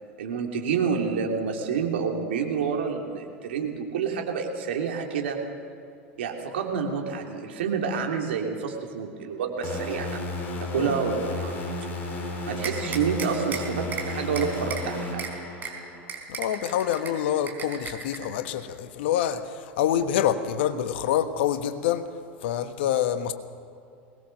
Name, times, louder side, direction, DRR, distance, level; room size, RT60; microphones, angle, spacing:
voice 1, 0.2-5.4 6.2-10.2 10.6-11.6 12.5-15.3, right 6 dB, 70° right, 3.0 m, -28 dB
sound 1, 9.6-16.1, left 2 dB, 35° left, 4.7 m, -33 dB
sound 2, 12.6-13.6 13.9-14.0 14.4-14.8 15.2-15.3 15.6-15.7 16.1-17.1 17.5-18.2, right 6 dB, 30° right, 4.0 m, -34 dB
voice 2, 16.3-22.1 22.4-23.3, left 10 dB, 65° left, 1.3 m, -26 dB
21.5 x 19.5 x 6.6 m
hypercardioid pair, 85°, 6 cm